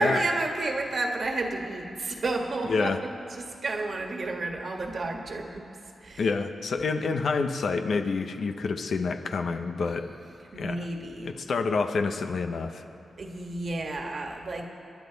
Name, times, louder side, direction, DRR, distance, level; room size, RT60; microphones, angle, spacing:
voice 1, 0.0-2.9 3.4-5.7 6.0-6.3 10.5-11.3 13.2-14.6, right 2 dB, 55° right, 2 dB, 1.8 m, -31 dB
voice 2, 2.7-3.0 6.2-10.1 10.6-10.9 11.2-12.8, left 4 dB, 70° left, 7 dB, 0.9 m, -28 dB
30.0 x 11.0 x 4.1 m, 2.6 s
cardioid pair, 95°, 0 cm